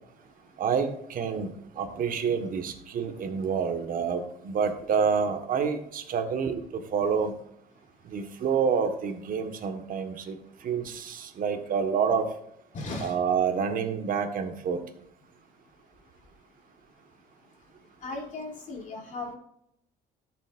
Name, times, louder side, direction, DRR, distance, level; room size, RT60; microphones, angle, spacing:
voice 1, 0.6-7.3 8.1-10.4 10.6-12.3 13.0-14.8, right 6 dB, 55° right, 6 dB, 1.5 m, -28 dB
voice 2, 12.7-13.1 18.0-19.4, left 2 dB, 50° left, -1 dB, 3.0 m, -36 dB
13.0 x 7.5 x 2.5 m, 0.75 s
cardioid pair, 110°, 17 cm